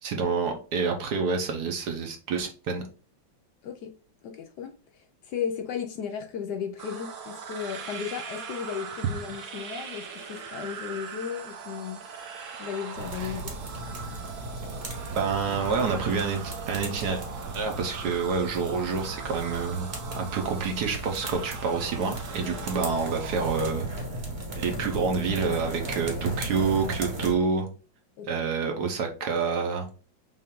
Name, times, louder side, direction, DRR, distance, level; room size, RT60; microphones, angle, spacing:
voice 1, 0.0-2.8 13.2-13.3 15.2-17.2 17.5-19.9 20.1-23.9 24.6-27.7 28.3-29.9, right 5 dB, 65° right, 1.2 m, -28 dB
voice 2, 4.2-12.0 12.6-13.5 22.4-22.7 28.2-28.4, left 7 dB, 70° left, 1.1 m, -35 dB
sound 1, 6.8-23.7, right 6 dB, 85° right, 1.7 m, -41 dB
sound 2, 13.0-27.3, right 1 dB, 40° right, 1.1 m, -36 dB
5.6 x 2.6 x 3.6 m
omnidirectional pair, 2.1 m